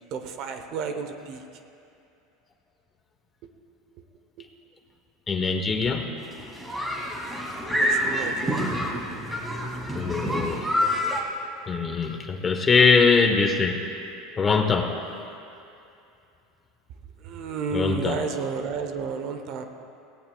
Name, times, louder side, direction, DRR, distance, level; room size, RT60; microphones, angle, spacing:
voice 1, 0.0-1.4 3.9-4.0 4.4-4.5 7.7-8.7 8.9-9.0 17.2-19.6, right 5 dB, 55° right, 6 dB, 1.0 m, -32 dB
voice 2, 5.3-6.1 9.9-10.7 11.7-13.8 14.3-15.0 17.7-18.3, left 5 dB, 25° left, 5 dB, 1.2 m, -22 dB
sound 1, 6.2-11.2, equal, 10° right, 2.6 m, -27 dB
18.0 x 17.0 x 2.4 m, 2.6 s
supercardioid pair, 115°, 0 cm